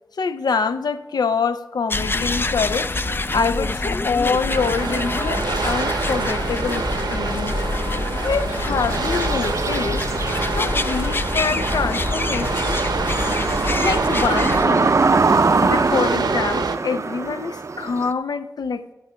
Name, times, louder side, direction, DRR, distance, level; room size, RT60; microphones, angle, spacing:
voice 1, 0.2-2.9 3.3-7.6 8.2-10.1 10.5-12.8 13.8-15.0 15.5-18.9, left 5 dB, 75° left, 0.6 m, -25 dB
sound 1, 1.9-14.7, left 2 dB, 30° left, 0.5 m, -26 dB
sound 2, 4.5-16.8, right 4 dB, 80° right, 0.8 m, -27 dB
sound 3, 8.4-18.1, right 4 dB, 45° right, 0.5 m, -23 dB
13.0 x 8.3 x 5.0 m
wide cardioid pair, 75°, 7 cm